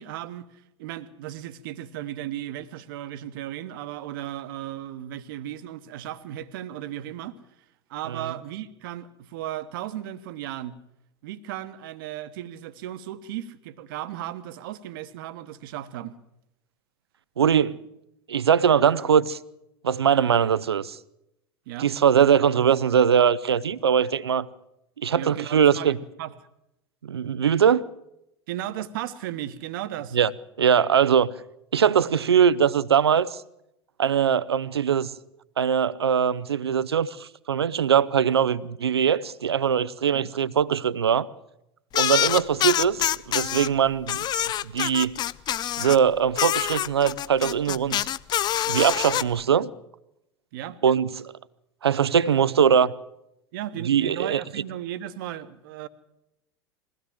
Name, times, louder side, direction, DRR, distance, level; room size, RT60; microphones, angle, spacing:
voice 1, 0.0-7.4 7.9-10.8 11.2-16.2 21.7-21.9 25.1-26.3 28.5-30.2 40.1-40.3 50.5-50.8 53.5-55.9, right 12 dB, 55° right, 1.3 m, -35 dB
voice 2, 17.4-17.8 18.3-19.4 19.8-21.0 21.8-24.5 25.0-26.0 27.0-27.8 30.1-30.3 30.6-31.3 31.7-33.4 34.0-35.1 35.6-41.3 42.0-44.2 44.6-45.2 45.8-48.1 48.7-49.7 50.8-51.3 51.8-52.9 53.8-54.4, right 8 dB, 75° right, 0.7 m, -21 dB
sound 1, 41.9-43.7 44.1-46.0 46.4-49.2, left 11 dB, 30° left, 0.6 m, -25 dB
22.0 x 16.0 x 7.7 m
figure-of-eight pair, 80°, 13 cm